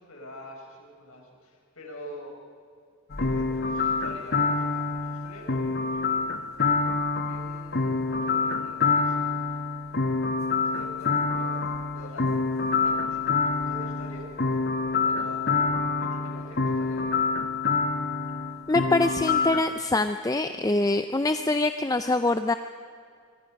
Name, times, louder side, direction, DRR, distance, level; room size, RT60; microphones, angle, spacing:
voice 1, 0.0-2.4 3.2-6.5 7.2-9.5 10.6-11.6 11.9-12.4 12.7-17.3, equal, 80° left, 0 dB, 6.1 m, -45 dB
sound 1, 3.1-19.6, left 4 dB, 45° left, 1.0 m, -27 dB
voice 2, 18.7-22.5, left 2 dB, 15° left, 9 dB, 0.4 m, -24 dB
26.0 x 23.5 x 5.3 m, 2.2 s
head